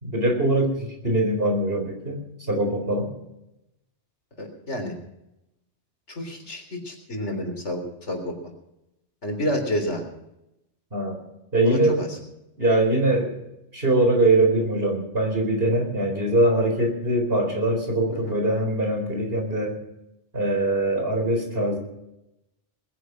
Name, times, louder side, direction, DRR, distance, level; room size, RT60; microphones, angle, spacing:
voice 1, 0.0-2.2 2.5-3.1 10.9-11.2 11.5-12.0 12.6-13.4 13.7-19.7 20.3-21.8, right 1 dB, 55° right, 3 dB, 4.5 m, -22 dB
voice 2, 4.4-5.0 6.1-8.4 9.2-10.0 11.6-12.2 18.1-18.3, left 1 dB, 90° left, 4 dB, 3.9 m, -29 dB
20.5 x 10.5 x 6.2 m, 0.87 s
omnidirectional pair, 1.2 m